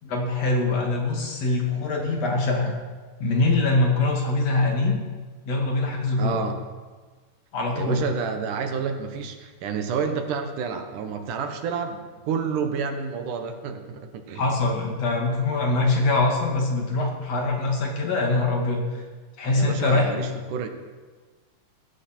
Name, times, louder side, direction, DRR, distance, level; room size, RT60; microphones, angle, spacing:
voice 1, 0.0-2.7 3.2-5.0 5.4-6.4 7.5-8.0 14.3-19.0 19.4-20.1, left 2 dB, 55° left, 0 dB, 3.4 m, -23 dB
voice 2, 6.2-6.6 7.7-14.4 19.5-20.7, right 6 dB, 85° right, 6 dB, 2.9 m, -29 dB
19.0 x 15.0 x 4.5 m, 1.4 s
omnidirectional pair, 3.5 m